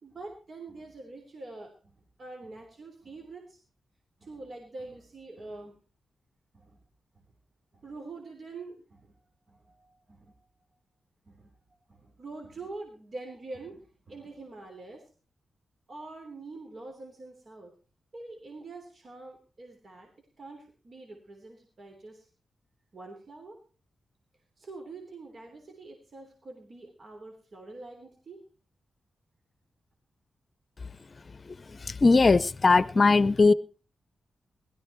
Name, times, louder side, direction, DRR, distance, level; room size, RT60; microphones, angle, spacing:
voice 1, 0.0-3.6 4.2-5.7 6.5-6.8 7.1-7.3 7.7-9.2 9.5-10.3 11.2-11.5 11.9-15.0 15.9-17.7 18.1-20.1 20.4-22.3 22.9-23.6 24.6-28.4, right 3 dB, 55° right, 2 dB, 3.4 m, -45 dB
voice 2, 32.0-33.5, left 3 dB, 45° left, 18 dB, 0.7 m, -19 dB
17.0 x 13.5 x 4.5 m, 0.36 s
cardioid pair, 60°, 0 cm